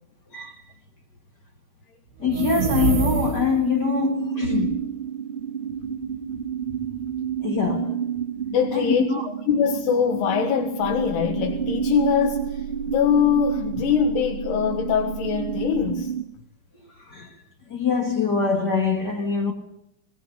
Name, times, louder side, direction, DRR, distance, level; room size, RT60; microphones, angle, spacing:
voice 1, 2.2-4.9 7.4-8.0 8.7-9.3 17.0-17.3 17.7-19.5, left 5 dB, 60° left, 1.1 m, -24 dB
sound 1, 2.2-3.8, right 5 dB, 90° right, 3.5 m, -25 dB
sound 2, 3.6-16.2, right 8 dB, 30° right, 1.1 m, -30 dB
voice 2, 8.5-9.0 9.5-16.1, left 8 dB, 90° left, 3.5 m, -23 dB
sound 3, 10.8-15.9, right 10 dB, 60° right, 4.0 m, -37 dB
21.5 x 19.0 x 8.3 m
omnidirectional pair, 4.6 m